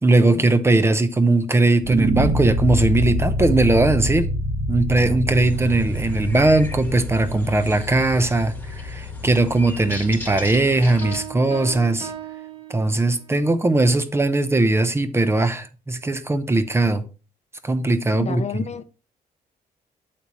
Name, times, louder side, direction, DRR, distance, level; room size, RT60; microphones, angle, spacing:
voice 1, 0.0-4.3 4.7-12.1 12.7-17.1 17.6-18.6, right 2 dB, 15° right, 0.7 m, -19 dB
sound 1, 1.8-10.9, equal, 55° right, 1.5 m, -26 dB
sound 2, 5.4-11.2, left 1 dB, 10° left, 1.5 m, -38 dB
sound 3, 11.0-13.4, right 8 dB, 35° right, 1.8 m, -37 dB
voice 2, 18.1-18.8, left 7 dB, 40° left, 0.6 m, -30 dB
8.6 x 7.1 x 3.0 m
cardioid pair, 140°, 17 cm